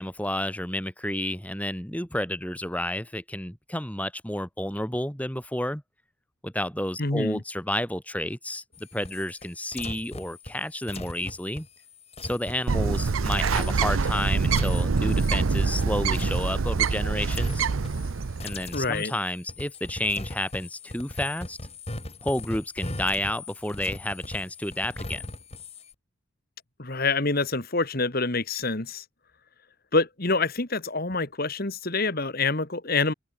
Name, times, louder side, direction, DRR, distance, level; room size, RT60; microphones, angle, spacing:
voice 1, 0.0-5.8 6.4-11.7 12.2-17.7 18.4-21.6 22.2-25.2, left 1 dB, 5° left, 3.2 m, -31 dB
voice 2, 7.0-7.4 18.7-19.1 26.8-29.0 29.9-33.1, left 3 dB, 45° left, 2.1 m, -26 dB
sound 1, 8.7-17.0 17.3-18.1 18.4-25.9, left 2 dB, 30° left, 2.9 m, -39 dB
Bird, 12.7-18.6, right 4 dB, 80° right, 0.6 m, -25 dB
head